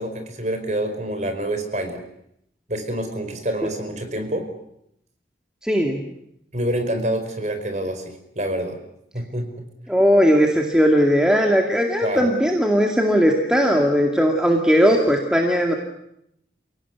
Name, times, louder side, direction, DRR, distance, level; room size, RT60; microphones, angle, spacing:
voice 1, 0.0-2.0 2.7-4.5 6.5-8.8 9.1-9.5 12.0-12.3, right 1 dB, 40° right, 7 dB, 4.8 m, -27 dB
voice 2, 5.6-6.0 9.9-15.7, equal, 5° right, 1 dB, 2.3 m, -18 dB
29.5 x 18.0 x 9.4 m, 0.78 s
head